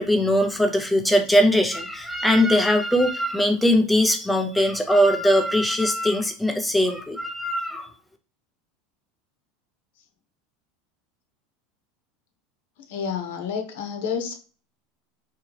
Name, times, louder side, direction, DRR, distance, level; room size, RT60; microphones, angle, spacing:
voice 1, 0.0-7.9, equal, ahead, 4 dB, 0.4 m, -21 dB
voice 2, 12.9-14.3, left 6 dB, 75° left, 5 dB, 0.9 m, -29 dB
3.7 x 2.7 x 3.0 m, 0.37 s
supercardioid pair, 180°, 0 cm